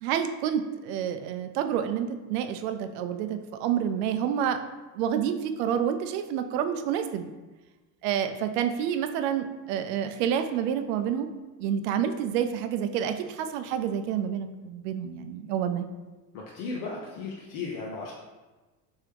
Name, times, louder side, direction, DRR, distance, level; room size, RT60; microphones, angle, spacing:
voice 1, 0.0-4.6 4.9-7.3 8.0-11.3 11.6-15.9, right 9 dB, 75° right, 8 dB, 0.5 m, -28 dB
voice 2, 16.3-18.1, left 4 dB, 65° left, -3 dB, 0.8 m, -35 dB
3.6 x 3.1 x 3.4 m, 1.2 s
hypercardioid pair, 80°, 50 cm